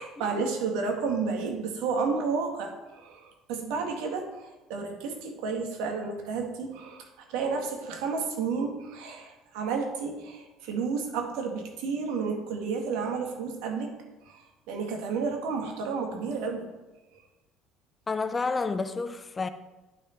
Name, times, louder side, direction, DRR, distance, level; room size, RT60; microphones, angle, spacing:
voice 1, 0.0-13.9 14.3-16.6, right 5 dB, 85° right, 2.1 m, -31 dB
voice 2, 18.1-19.5, left 4 dB, 20° left, 0.6 m, -30 dB
10.5 x 6.1 x 4.6 m
cardioid pair, 130°, 0 cm